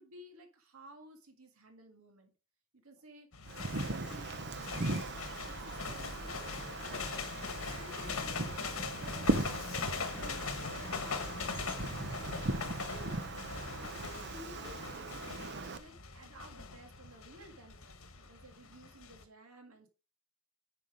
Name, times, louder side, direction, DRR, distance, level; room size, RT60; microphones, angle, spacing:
voice 1, 0.0-2.3 2.7-11.5 12.2-12.4 12.9-13.2 13.7-15.2 15.8-19.9, right 1 dB, 85° right, 4 dB, 1.9 m, -54 dB
sound 1, 3.3-19.2, left 5 dB, 70° left, 1.4 m, -41 dB
Wind, 3.4-15.8, right 2 dB, 55° right, 0.9 m, -38 dB
9.6 x 6.0 x 4.9 m, 0.33 s
head